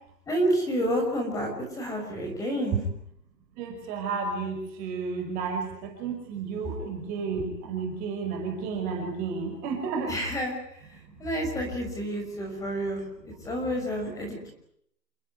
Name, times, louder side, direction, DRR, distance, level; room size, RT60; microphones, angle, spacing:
voice 1, 0.3-2.8 10.1-10.6 11.2-14.5, equal, 5° left, 1 dB, 6.0 m, -29 dB
voice 2, 3.6-10.2, right 5 dB, 15° right, 3 dB, 5.3 m, -32 dB
29.0 x 20.5 x 9.5 m, 0.72 s
hypercardioid pair, 160°, 50 cm